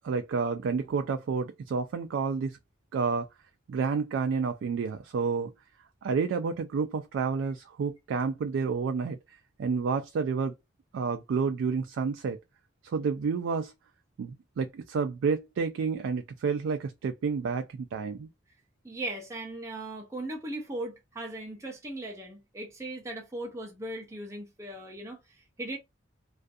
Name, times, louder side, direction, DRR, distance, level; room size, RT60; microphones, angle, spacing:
voice 1, 0.0-2.6 2.9-3.3 3.7-5.5 6.0-9.2 9.6-10.5 10.9-12.4 12.8-13.7 14.2-18.3, right 5 dB, 80° right, 0.3 m, -30 dB
voice 2, 18.8-25.8, right 1 dB, 15° right, 0.5 m, -38 dB
2.5 x 2.4 x 2.3 m
head